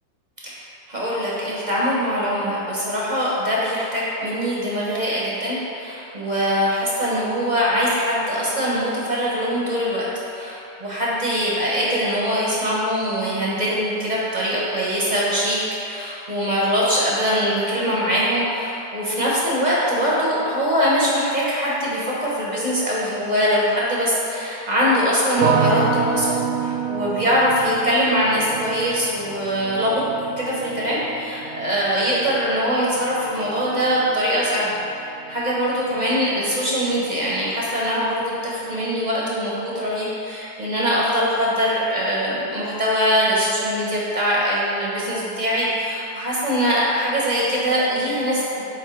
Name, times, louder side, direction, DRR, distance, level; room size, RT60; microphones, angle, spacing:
voice 1, 0.9-30.0 30.4-48.4, equal, 30° right, -6 dB, 0.9 m, -22 dB
sound 1, 25.4-36.4 36.7-37.5, right 6 dB, 70° right, 0.7 m, -29 dB
8.1 x 3.3 x 4.8 m, 2.9 s
omnidirectional pair, 1.9 m